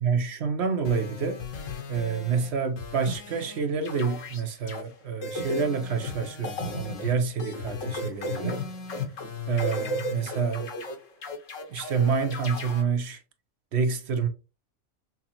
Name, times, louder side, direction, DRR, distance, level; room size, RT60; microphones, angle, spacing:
voice 1, 0.0-1.4 1.9-8.6 9.5-10.7 11.7-13.2 13.7-14.3, right 5 dB, 60° right, 0.9 m, -28 dB
sound 1, 0.8-2.5 2.8-3.6 3.8-4.8 5.2-12.8, left 2 dB, 65° left, 1.3 m, -35 dB
5.8 x 2.0 x 2.8 m
omnidirectional pair, 1.4 m